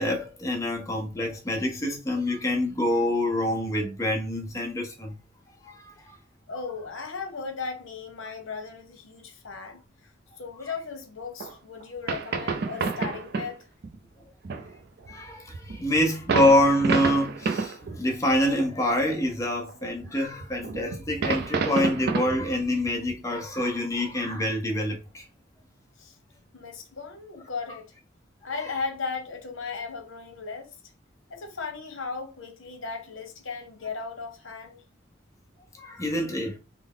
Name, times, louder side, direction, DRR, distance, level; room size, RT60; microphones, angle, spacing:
voice 1, 0.0-5.2 5.6-6.2 15.1-25.2 35.8-36.6, left 1 dB, 15° left, 0.7 m, -26 dB
voice 2, 6.5-10.1 10.4-13.6 26.0-26.2 26.5-27.9 28.4-30.7 31.3-34.8, left 4 dB, 80° left, 0.9 m, -36 dB
sound 1, 11.4-11.5 11.8-11.9 12.1-13.5 13.8-14.0 14.4-18.0 18.3-18.7 19.4-20.1 20.4-23.6, right 4 dB, 50° right, 0.4 m, -29 dB
3.5 x 2.0 x 3.7 m
head